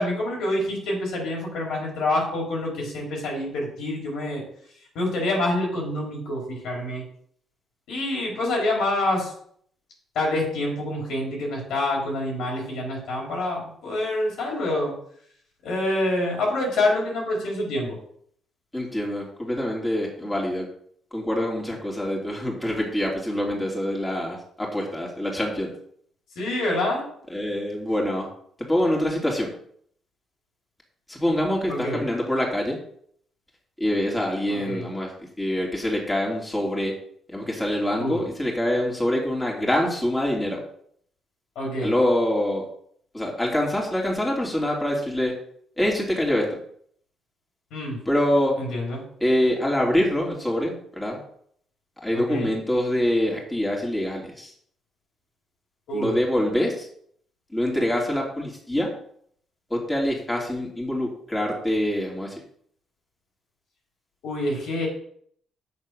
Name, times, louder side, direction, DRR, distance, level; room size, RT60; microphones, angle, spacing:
voice 1, 0.0-4.4 4.9-7.0 7.9-9.3 10.1-14.9 15.6-18.0 26.3-27.1 31.7-32.0 34.5-34.8 38.0-38.2 41.5-41.9 47.7-48.0 48.6-49.0 52.1-52.5 55.9-56.2 64.2-64.9, left 1 dB, 80° left, -2 dB, 4.8 m, -26 dB
voice 2, 18.7-20.7 21.1-25.7 27.3-28.3 28.6-29.5 31.1-32.8 33.8-35.1 35.4-36.9 37.3-40.6 41.8-42.6 43.1-45.3 45.8-46.6 48.0-48.5 49.2-51.2 52.0-54.5 55.9-56.9 57.5-58.9 59.7-62.4, left 1 dB, 10° left, -2 dB, 3.2 m, -25 dB
8.0 x 7.0 x 6.2 m, 0.64 s
cardioid pair, 90°, 0 cm